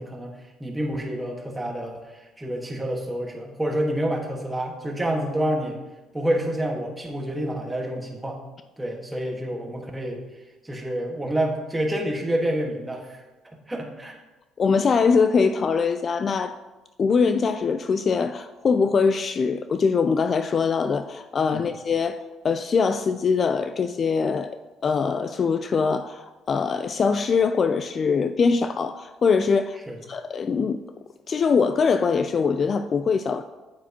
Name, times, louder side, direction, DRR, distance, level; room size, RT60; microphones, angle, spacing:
voice 1, 0.0-2.0 2.4-5.8 6.1-8.4 8.8-10.2 10.6-13.2 13.7-14.2 21.5-21.6 29.9-30.0, right 1 dB, 10° right, 1 dB, 1.5 m, -28 dB
voice 2, 14.6-16.5 17.0-24.6 24.8-29.8 30.1-30.8 31.3-33.4, left 5 dB, 40° left, 10 dB, 0.3 m, -22 dB
8.9 x 8.5 x 2.9 m, 1.1 s
cardioid pair, 110°, 0 cm